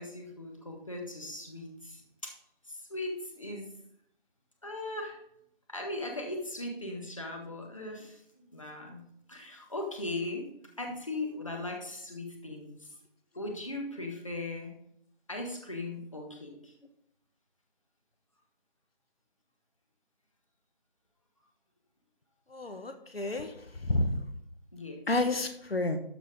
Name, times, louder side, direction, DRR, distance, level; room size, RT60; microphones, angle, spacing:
voice 1, 0.0-2.3 2.7-3.7 4.6-5.2 5.7-10.5 10.8-13.0 13.3-14.8 15.3-16.7 23.4-23.5 24.7-25.0, left 2 dB, 35° left, 1 dB, 1.5 m, -39 dB
voice 2, 22.5-23.5 23.8-24.2 25.1-26.0, left 2 dB, 75° left, 7 dB, 1.3 m, -30 dB
13.0 x 4.5 x 5.1 m, 0.71 s
figure-of-eight pair, 180°, 30 cm